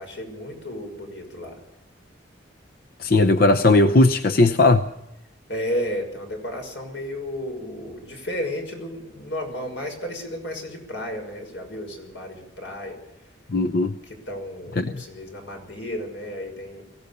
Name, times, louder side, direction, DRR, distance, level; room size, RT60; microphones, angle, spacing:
voice 1, 0.0-1.6 5.5-13.0 14.1-16.8, left 1 dB, 90° left, 3 dB, 6.0 m, -33 dB
voice 2, 3.0-4.8 13.5-13.9 14.8-14.9, left 2 dB, 55° left, 10 dB, 0.7 m, -17 dB
24.0 x 16.5 x 6.9 m, 0.91 s
head